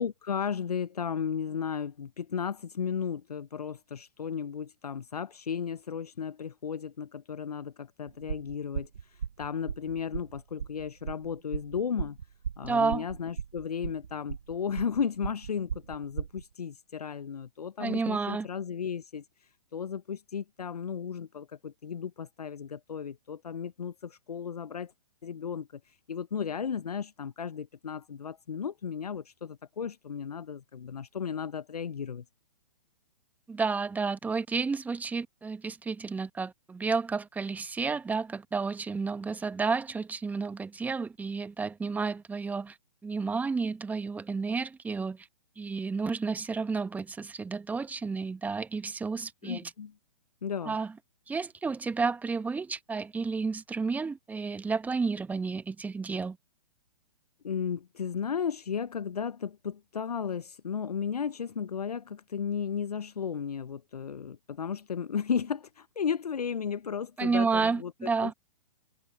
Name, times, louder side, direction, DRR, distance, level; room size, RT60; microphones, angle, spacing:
voice 1, 0.0-12.2 12.6-24.9 25.2-32.2 49.4-49.9 50.4-50.8 57.4-68.3, left 7 dB, 70° left, 0.8 m, -34 dB
sound 1, 8.1-16.4, right 7 dB, 70° right, 0.8 m, -37 dB
voice 2, 12.6-13.0 17.8-18.5 33.5-42.8 43.0-45.3 45.6-49.7 50.6-50.9 51.3-56.4 67.2-68.3, right 4 dB, 10° right, 1.6 m, -31 dB
figure-of-eight pair, 120°, 20 cm